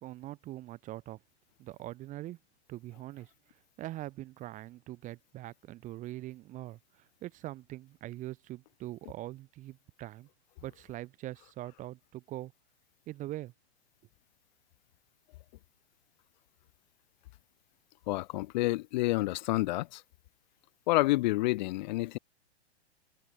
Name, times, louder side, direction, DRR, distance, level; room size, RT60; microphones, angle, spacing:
voice 1, 0.0-1.2 1.6-2.4 2.7-3.3 3.8-10.3 10.6-12.5 13.1-13.5, right 15 dB, 25° right, 0.8 m, -42 dB
voice 2, 18.1-20.0 20.9-22.2, left 19 dB, 40° left, 0.6 m, -29 dB
figure-of-eight pair, 110°, 33 cm